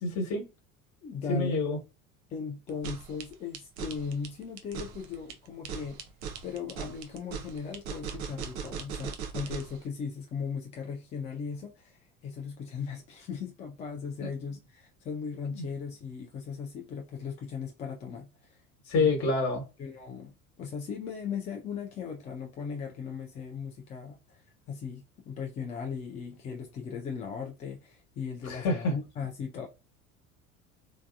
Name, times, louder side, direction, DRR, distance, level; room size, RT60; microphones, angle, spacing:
voice 1, 0.0-0.5 1.3-1.8 14.2-14.3 15.5-15.6 18.9-19.6 28.4-28.9, left 3 dB, 40° left, 1.4 m, -27 dB
voice 2, 1.0-1.6 2.3-6.0 6.4-18.6 18.9-19.1 19.8-24.4 24.7-29.7, left 6 dB, 20° left, 0.3 m, -38 dB
sound 1, 2.7-9.8, right 7 dB, 45° right, 0.6 m, -39 dB
3.2 x 2.0 x 2.6 m
figure-of-eight pair, 70°, 42 cm